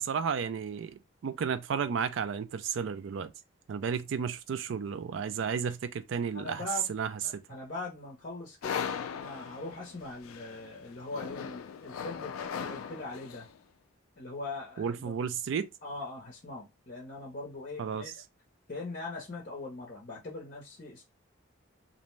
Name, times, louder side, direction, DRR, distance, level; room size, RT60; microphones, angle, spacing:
voice 1, 0.0-3.3 3.7-7.4 14.8-15.7 17.8-18.0, right 7 dB, 65° right, 0.3 m, -33 dB
voice 2, 6.3-6.9 7.2-13.5 14.2-15.1 15.8-18.1 18.7-21.1, left 2 dB, 40° left, 0.7 m, -41 dB
sound 1, 8.6-13.6, left 7 dB, 85° left, 0.3 m, -39 dB
2.6 x 2.1 x 3.0 m
head